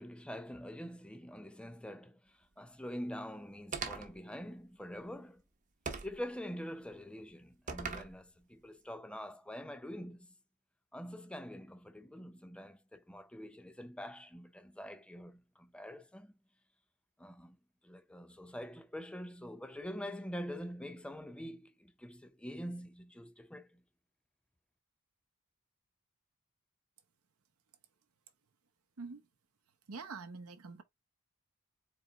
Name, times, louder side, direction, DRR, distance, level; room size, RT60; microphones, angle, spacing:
voice 1, 0.0-5.4 6.0-10.3 10.9-16.3 17.2-17.6 17.8-23.8, equal, 5° left, 0.5 m, -45 dB
sound 1, 3.7-4.2 5.9-6.2 7.7-8.1, right 5 dB, 35° right, 0.9 m, -39 dB
voice 2, 29.0-29.3 29.9-30.8, right 4 dB, 70° right, 0.8 m, -45 dB
4.2 x 3.1 x 3.8 m
head